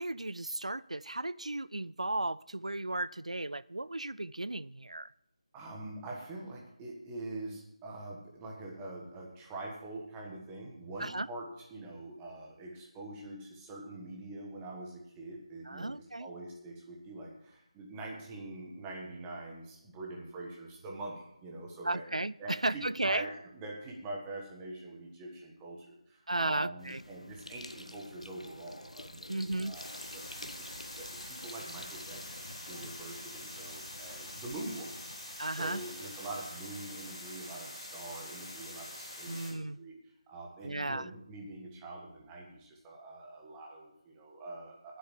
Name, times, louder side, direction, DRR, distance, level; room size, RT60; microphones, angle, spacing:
voice 1, 0.0-5.1 11.0-11.3 15.7-16.3 21.8-23.3 26.3-27.0 29.3-29.8 35.4-35.8 39.3-39.8 40.6-41.1, right 2 dB, 75° right, 19 dB, 0.4 m, -35 dB
voice 2, 5.5-15.9 16.2-22.0 22.4-32.3 32.7-34.9 35.5-39.9 40.3-45.0, right 2 dB, 10° right, -1 dB, 1.4 m, -44 dB
sound 1, 26.8-35.2, left 1 dB, 75° left, 1.0 m, -49 dB
sound 2, 29.7-39.5, left 1 dB, 10° left, 3.0 m, -45 dB
10.0 x 7.9 x 7.3 m, 0.78 s
figure-of-eight pair, 160°, 4 cm